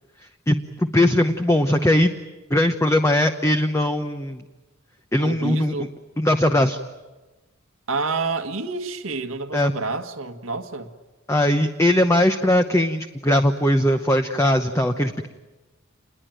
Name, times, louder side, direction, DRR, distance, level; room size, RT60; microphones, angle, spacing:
voice 1, 0.5-2.1 2.5-4.4 5.1-5.7 6.2-6.8 9.5-9.7 11.3-15.3, left 1 dB, 15° left, 6 dB, 0.9 m, -20 dB
voice 2, 5.2-5.9 7.9-10.9, right 3 dB, 80° right, 4 dB, 1.7 m, -28 dB
28.0 x 21.5 x 9.2 m, 1.1 s
head